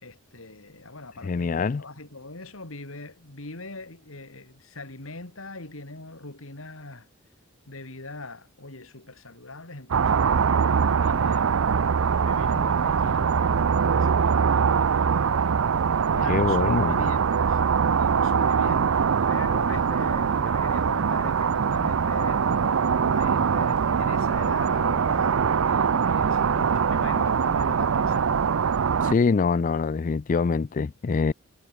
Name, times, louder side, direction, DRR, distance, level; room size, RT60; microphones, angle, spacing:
voice 1, 0.0-7.1 7.7-11.5 12.2-15.5 16.1-17.6 17.9-28.4, left 2 dB, 90° left, 3.6 m, -41 dB
voice 2, 1.2-1.8 16.3-17.0 29.0-31.3, left 4 dB, 40° left, 0.4 m, -24 dB
sound 1, 9.9-29.1, right 6 dB, 85° right, 0.5 m, -23 dB
head